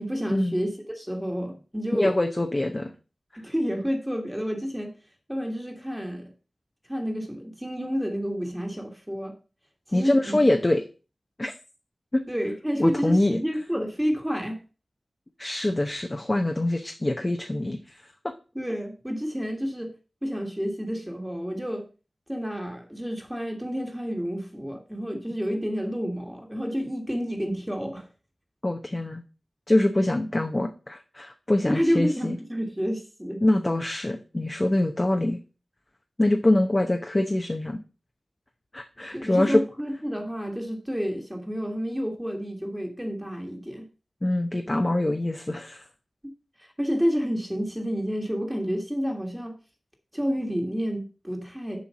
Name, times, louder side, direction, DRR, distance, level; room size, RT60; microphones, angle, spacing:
voice 1, 0.0-2.1 3.3-4.9 5.3-6.3 6.9-9.3 9.9-10.4 12.3-14.6 18.5-19.9 20.2-21.8 22.3-28.1 31.6-33.4 39.1-43.9 46.6-49.6 50.1-51.8, equal, 5° right, 2 dB, 1.6 m, -29 dB
voice 2, 1.9-2.9 9.9-10.8 11.4-11.5 12.1-12.2 12.8-13.4 15.4-18.0 28.6-29.2 29.7-32.4 33.4-35.4 36.2-37.8 38.7-39.6 44.2-45.8, left 1 dB, 25° left, 5 dB, 0.8 m, -24 dB
7.2 x 4.5 x 6.4 m, 0.33 s
wide cardioid pair, 85°, 0 cm